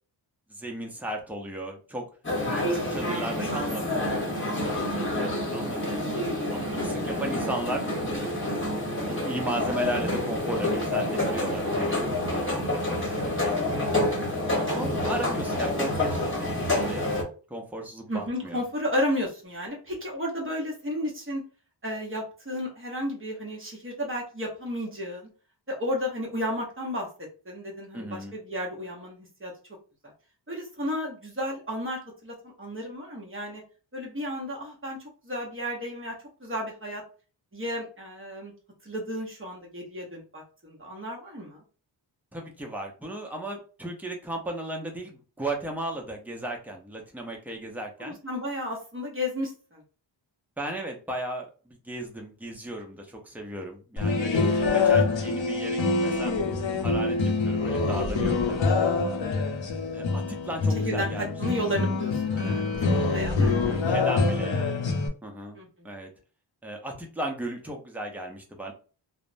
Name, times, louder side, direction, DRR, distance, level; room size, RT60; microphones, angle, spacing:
voice 1, 0.5-2.1 2.4-4.2 4.4-5.9 6.5-7.9 8.1-8.4 9.1-13.6 14.4-17.1 17.5-18.6 27.9-28.4 42.3-48.2 50.6-54.5 54.7-56.4 56.8-57.2 57.4-58.7 59.0-59.2 59.9-61.3 63.4-65.6 65.8-66.1 66.6-68.7, right 1 dB, 5° right, 1 dB, 0.6 m, -36 dB
sound 1, 2.2-17.2, left 1 dB, 25° left, 1.0 m, -28 dB
voice 2, 5.0-5.4 18.1-21.4 21.8-25.3 25.7-27.1 27.5-29.5 30.5-33.6 33.9-35.0 35.2-36.1 36.4-37.0 37.5-38.5 38.8-41.6 48.0-49.8 60.8-62.8 63.1-63.9 64.3-64.6 65.5-65.7, equal, 25° right, -2 dB, 0.9 m, -33 dB
sound 2, 54.0-65.1, left 4 dB, 75° left, 0.7 m, -25 dB
3.3 x 2.0 x 2.5 m, 0.36 s
wide cardioid pair, 140°, 46 cm